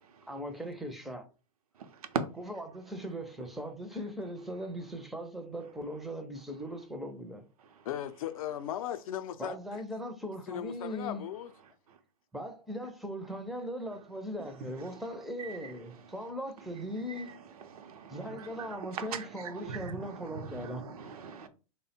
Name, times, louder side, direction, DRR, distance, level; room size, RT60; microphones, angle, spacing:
voice 1, 0.3-1.2 2.3-7.4 9.4-11.3 12.3-17.4 18.1-20.8, equal, ahead, 0.4 m, -39 dB
voice 2, 7.9-9.6 10.5-11.5, left 11 dB, 70° left, 0.5 m, -37 dB
voice 3, 17.7-18.2 18.9-19.0 19.6-20.0 20.6-21.5, right 5 dB, 80° right, 0.6 m, -37 dB
3.4 x 2.1 x 4.1 m
hypercardioid pair, 135°, 18 cm